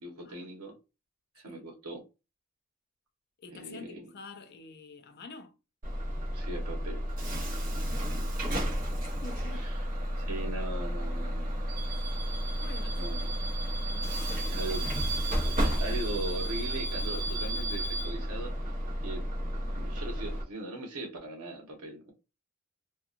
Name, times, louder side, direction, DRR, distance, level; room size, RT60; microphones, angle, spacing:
voice 1, 0.0-0.7 1.3-2.0 3.5-4.1 6.3-7.0 8.1-8.2 9.5-9.7 10.2-11.5 13.0-13.3 14.5-14.8 15.8-18.7 19.0-19.2 19.7-22.1, right 2 dB, 80° right, 1.0 m, -39 dB
voice 2, 3.4-5.5 7.6-8.3 9.0-9.7 12.0-12.1 12.6-13.0 13.8-14.5, left 3 dB, 50° left, 0.4 m, -48 dB
Bus / Alarm, 5.8-20.4, equal, 35° right, 0.9 m, -32 dB
2.8 x 2.3 x 2.4 m
head